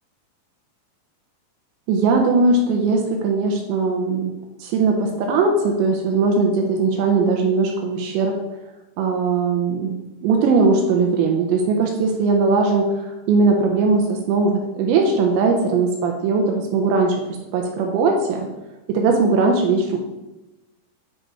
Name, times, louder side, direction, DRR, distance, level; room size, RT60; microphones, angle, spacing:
voice 1, 1.9-4.3 4.6-8.3 9.0-9.9 10.2-17.1 17.5-18.5 18.9-20.0, right 4 dB, 80° right, 2 dB, 2.6 m, -19 dB
10.0 x 5.1 x 3.0 m, 1.0 s
omnidirectional pair, 5.8 m